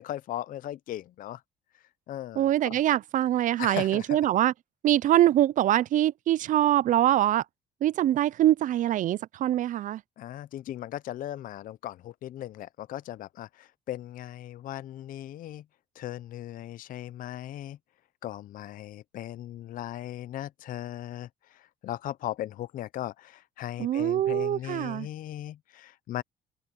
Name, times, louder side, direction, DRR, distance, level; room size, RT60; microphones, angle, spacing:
voice 1, 0.0-1.4 1.7-2.8 3.6-4.2 10.2-15.6 16.0-17.8 18.2-26.2, left 13 dB, 55° left, 0.5 m, -38 dB
voice 2, 2.4-4.5 4.8-7.4 7.8-10.0 23.8-25.1, right 12 dB, 50° right, 0.4 m, -24 dB
cardioid pair, 110°, 17 cm